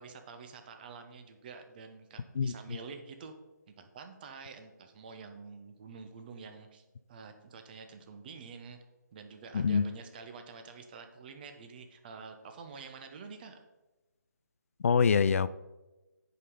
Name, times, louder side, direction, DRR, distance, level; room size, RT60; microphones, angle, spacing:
voice 1, 0.0-3.4 3.7-8.8 9.1-13.6, right 5 dB, 30° right, 1.0 m, -48 dB
voice 2, 2.4-2.8 9.5-9.8 14.8-15.5, left 6 dB, 45° left, 0.4 m, -25 dB
9.6 x 5.1 x 5.5 m
figure-of-eight pair, 155°, 10 cm